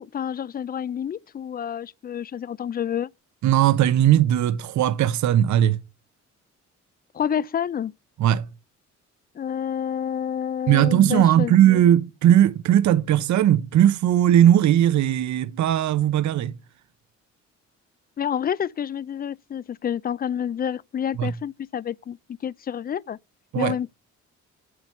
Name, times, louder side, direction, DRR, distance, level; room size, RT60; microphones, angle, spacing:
voice 1, 0.0-3.1 7.1-7.9 9.3-11.8 18.2-22.2 22.4-23.2 23.5-23.9, left 8 dB, 30° left, 0.4 m, -28 dB
voice 2, 3.4-5.8 8.2-8.5 10.7-16.5 21.2-21.3 23.5-23.8, right 11 dB, 70° right, 0.8 m, -18 dB
8.0 x 7.8 x 5.5 m
cardioid pair, 90°, 30 cm